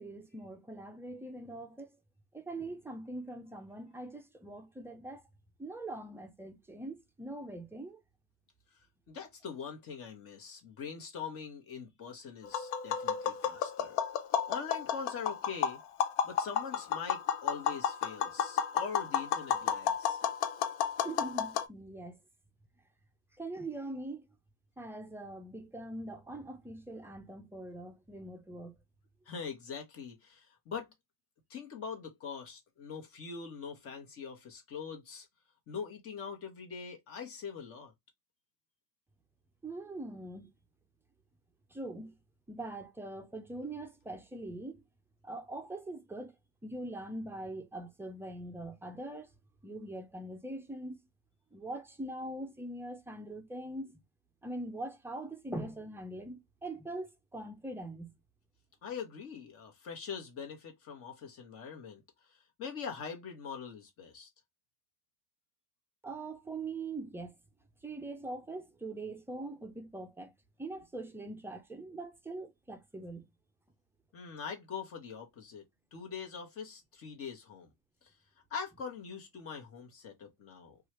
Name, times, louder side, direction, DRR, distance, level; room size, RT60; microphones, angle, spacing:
voice 1, 0.0-1.9 2.3-5.2 5.6-8.0 21.0-22.2 23.4-24.3 24.8-28.8 39.6-40.5 41.7-42.1 42.5-44.8 45.2-46.3 46.6-49.3 49.6-51.0 51.5-53.9 54.4-58.2 66.0-67.3 67.8-70.3 70.6-73.3, right 2 dB, 5° right, 0.4 m, -42 dB
voice 2, 8.7-15.8 16.2-20.2 29.2-30.9 31.5-35.3 35.7-37.9 58.8-64.3 74.1-75.6 75.9-77.7 78.0-78.1 78.5-80.8, left 6 dB, 45° left, 1.2 m, -43 dB
Tap, 12.4-21.7, left 8 dB, 90° left, 0.6 m, -32 dB
3.0 x 2.4 x 3.0 m
cardioid pair, 130°, 33 cm